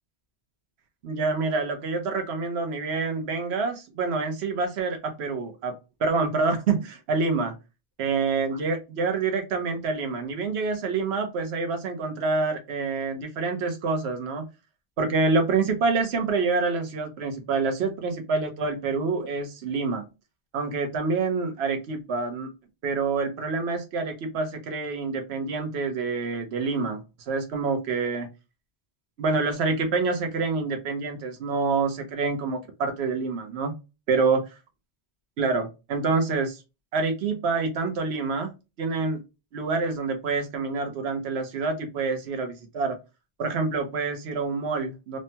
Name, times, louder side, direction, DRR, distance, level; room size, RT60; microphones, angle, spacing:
voice 1, 1.0-7.5 8.0-14.4 15.0-20.1 20.5-22.5 22.8-28.3 29.2-33.7 34.1-34.4 35.4-36.6 36.9-38.5 38.8-39.2 39.5-43.0 43.4-45.2, right 4 dB, 75° right, 4 dB, 1.1 m, -27 dB
3.1 x 2.1 x 2.7 m, 0.26 s
omnidirectional pair, 1.1 m